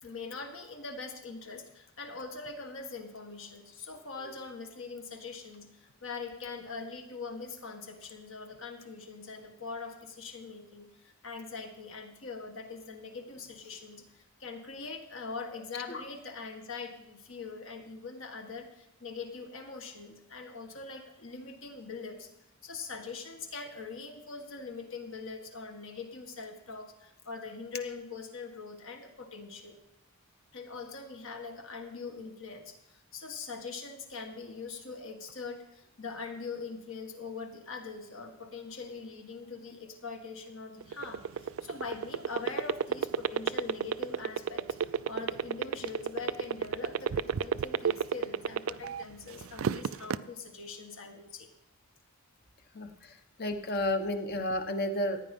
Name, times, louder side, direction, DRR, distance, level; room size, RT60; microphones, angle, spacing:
voice 1, 0.0-22.3 22.6-29.8 30.5-51.5, left 4 dB, 65° left, 4 dB, 1.8 m, -42 dB
sound 1, 40.8-49.0 49.4-50.2, right 7 dB, 65° right, 0.4 m, -29 dB
voice 2, 52.7-55.2, left 1 dB, 45° left, 7 dB, 1.1 m, -32 dB
15.0 x 9.8 x 5.4 m, 0.85 s
head